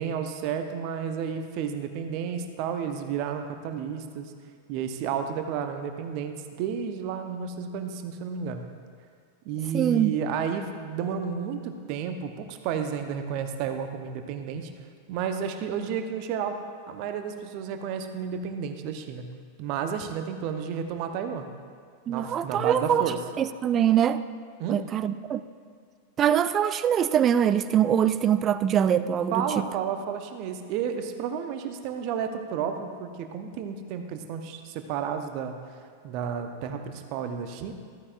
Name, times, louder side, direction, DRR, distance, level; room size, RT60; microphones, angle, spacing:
voice 1, 0.0-4.3 4.7-8.6 9.4-14.7 15.1-16.6 16.9-19.3 19.6-21.5 22.1-23.2 24.6-24.8 29.3-35.6 36.0-37.7, right 7 dB, 45° right, 6 dB, 0.9 m, -31 dB
voice 2, 9.7-10.1 22.1-23.0 23.4-24.2 24.7-25.4 26.2-29.7, right 9 dB, 30° right, 14 dB, 0.4 m, -23 dB
14.5 x 14.0 x 2.5 m, 2.1 s
figure-of-eight pair, 90°, 0 cm